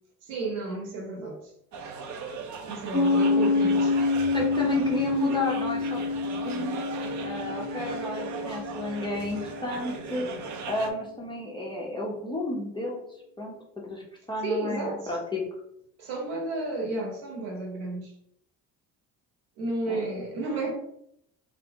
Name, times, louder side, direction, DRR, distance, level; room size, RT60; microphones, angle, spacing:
voice 1, 0.2-1.4 2.7-4.0 14.4-15.1 16.0-18.1 19.6-20.7, right 2 dB, 65° right, 0.9 m, -32 dB
sound 1, 1.7-10.9, right 5 dB, 40° right, 0.4 m, -38 dB
Piano, 2.9-10.2, left 3 dB, 80° left, 0.8 m, -27 dB
voice 2, 4.3-6.0 6.4-6.8 7.2-13.0 13.4-13.5 13.8-15.4 19.9-20.1, left 1 dB, 10° left, 0.5 m, -32 dB
2.3 x 2.0 x 2.7 m
hypercardioid pair, 55°, 45 cm